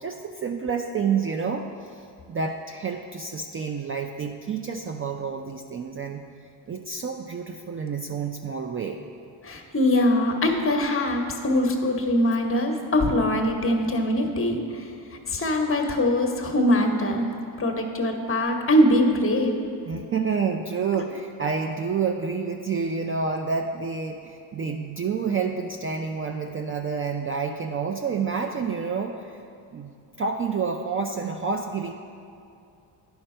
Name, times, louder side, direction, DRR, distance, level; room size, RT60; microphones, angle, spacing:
voice 1, 0.0-2.0 2.3-6.2 6.7-9.0 19.9-29.4 29.7-31.9, right 5 dB, 30° right, 4 dB, 0.4 m, -29 dB
voice 2, 9.4-14.9 15.3-17.3 17.6-19.6, left 1 dB, 30° left, 3 dB, 1.1 m, -22 dB
9.9 x 5.7 x 4.4 m, 2.5 s
supercardioid pair, 80°, 46 cm